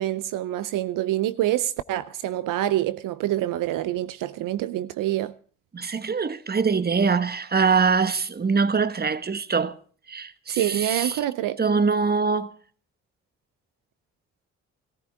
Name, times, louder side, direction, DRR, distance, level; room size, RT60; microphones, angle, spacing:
voice 1, 0.0-5.3 10.5-11.6, right 13 dB, 75° right, 0.6 m, -26 dB
voice 2, 5.7-9.8 10.1-11.2 11.6-12.5, right 5 dB, 30° right, 1.1 m, -23 dB
19.0 x 14.5 x 3.5 m
supercardioid pair, 55°, 33 cm